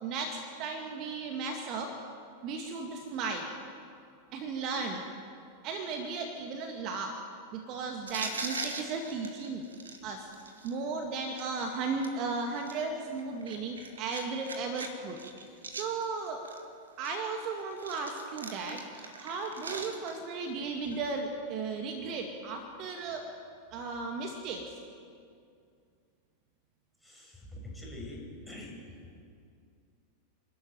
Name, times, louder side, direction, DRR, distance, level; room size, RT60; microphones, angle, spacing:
voice 1, 0.0-2.0 2.4-3.5 4.3-5.1 5.6-7.2 7.5-9.7 10.0-10.3 10.6-15.2 15.5-16.5 17.0-23.3 23.7-24.8, right 4 dB, 40° right, 3 dB, 2.2 m, -35 dB
sound 1, 8.1-10.7 11.3-12.1 12.5-14.9 15.1-16.6 17.0-20.3 20.8-21.0, right 3 dB, 70° right, 2.6 m, -41 dB
voice 2, 27.0-28.8, left 1 dB, 5° left, -3 dB, 7.6 m, -44 dB
28.0 x 13.0 x 9.3 m, 2.3 s
figure-of-eight pair, 90°, 0 cm